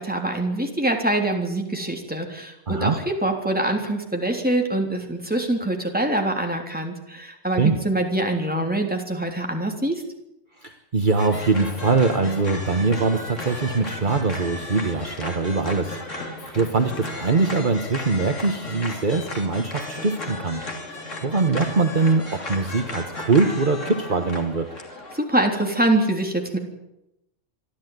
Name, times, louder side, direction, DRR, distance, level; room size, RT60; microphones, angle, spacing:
voice 1, 0.0-10.0 25.1-26.6, right 1 dB, 5° right, 2 dB, 3.5 m, -24 dB
voice 2, 10.6-20.6 20.9-24.7, right 3 dB, 40° right, 5 dB, 1.5 m, -22 dB
sound 1, 11.2-25.2, left 2 dB, 85° left, 3.4 m, -35 dB
25.5 x 12.5 x 9.5 m, 0.87 s
omnidirectional pair, 1.3 m